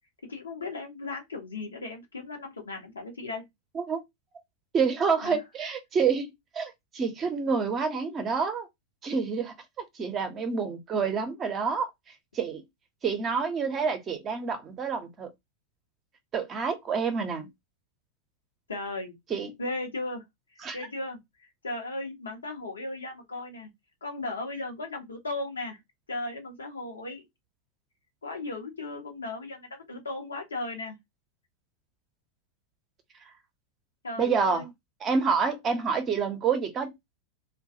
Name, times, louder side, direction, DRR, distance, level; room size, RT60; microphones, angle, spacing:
voice 1, 0.2-3.5 5.2-5.4 18.7-19.1 19.6-20.2 20.7-23.7 24.0-25.8 26.1-27.2 28.2-31.0 34.0-34.7, left 2 dB, 75° left, 0.8 m, -36 dB
voice 2, 4.7-6.3 6.5-8.7 9.0-9.5 9.9-11.9 12.3-12.6 13.0-15.3 16.3-17.5 19.3-19.5 20.6-20.8 34.2-34.6 35.0-36.9, right 5 dB, 25° right, 0.7 m, -28 dB
2.3 x 2.2 x 2.7 m
figure-of-eight pair, 90°, 0 cm